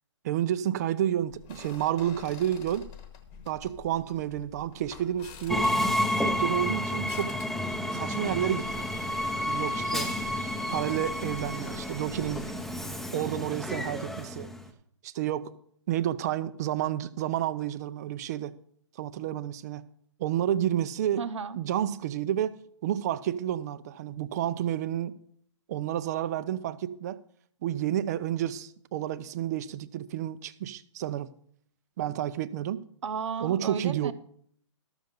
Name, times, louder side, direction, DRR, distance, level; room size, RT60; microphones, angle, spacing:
voice 1, 0.2-2.9 3.5-5.6 6.2-7.4 7.9-8.9 9.4-10.1 10.7-12.5 13.1-14.5 15.0-15.5 15.9-18.5 19.0-19.8 20.2-21.2 21.6-22.6 22.8-25.1 25.7-27.2 27.6-31.3 32.0-32.8 33.4-34.1, right 11 dB, 35° right, 0.5 m, -30 dB
sound 1, 1.3-13.0, left 6 dB, 20° left, 1.2 m, -49 dB
Train, 5.5-14.7, left 1 dB, ahead, 0.7 m, -30 dB
voice 2, 21.2-21.6 33.0-34.1, right 6 dB, 70° right, 0.8 m, -33 dB
13.0 x 6.5 x 5.2 m
hypercardioid pair, 150°, 16 cm